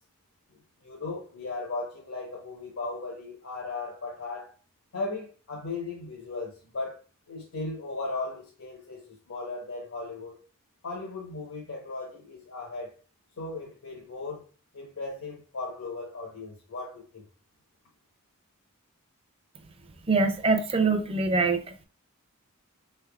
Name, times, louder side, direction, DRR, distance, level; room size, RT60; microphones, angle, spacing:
voice 1, 0.5-4.5 4.9-7.0 7.3-10.3 10.8-12.9 13.4-14.4 14.7-17.2, left 3 dB, 80° left, 1.0 m, -37 dB
voice 2, 20.1-21.8, right 3 dB, 25° right, 0.5 m, -24 dB
3.7 x 3.4 x 2.3 m
head